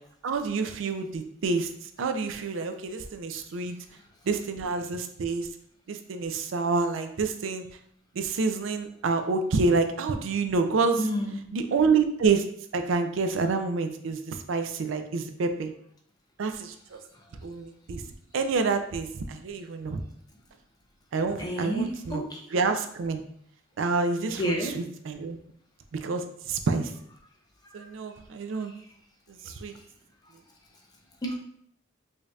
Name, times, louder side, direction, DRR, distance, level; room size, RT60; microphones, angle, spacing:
voice 1, 0.2-1.7 2.0-3.8 4.3-5.5 5.9-7.7 8.2-11.0 11.5-12.4 12.7-15.7 16.4-17.0 17.4-18.0 18.3-20.0 21.1-22.2 22.5-23.2 23.8-25.4 26.0-26.9 27.7-28.7 29.4-29.7, right 4 dB, 80° right, 7 dB, 0.4 m, -28 dB
voice 2, 11.0-11.4 21.4-22.4 24.3-24.7 31.2-31.4, equal, 20° left, 0 dB, 0.6 m, -30 dB
5.1 x 2.7 x 2.3 m, 0.68 s
head